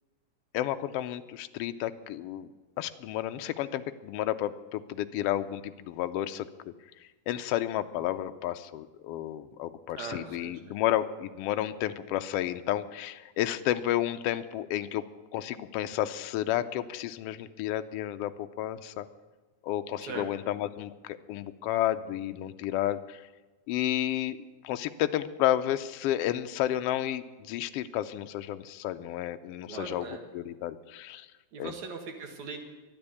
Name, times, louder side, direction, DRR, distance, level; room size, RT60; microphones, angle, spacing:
voice 1, 0.5-2.5 2.8-6.5 7.3-15.0 15.3-19.1 19.6-23.2 23.7-24.4 24.6-30.1 30.3-31.3 31.6-31.7, left 12 dB, 85° left, 9 dB, 1.4 m, -31 dB
voice 2, 10.0-10.5 20.0-20.3 29.7-30.2 31.5-32.6, right 4 dB, 75° right, 3 dB, 3.0 m, -40 dB
12.5 x 10.5 x 8.3 m, 1.2 s
omnidirectional pair, 3.3 m